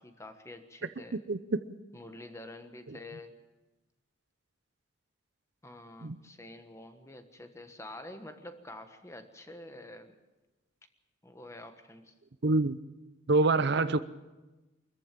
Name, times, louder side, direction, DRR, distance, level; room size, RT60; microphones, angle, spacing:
voice 1, 0.0-1.2 1.9-3.3 5.6-10.2 11.2-12.1, left 1 dB, 15° left, 8 dB, 1.4 m, -47 dB
voice 2, 1.3-1.7 2.9-3.0 6.0-6.2 12.4-12.8 13.3-14.0, right 3 dB, 60° right, 13 dB, 0.7 m, -26 dB
24.0 x 14.5 x 7.5 m, 1.1 s
head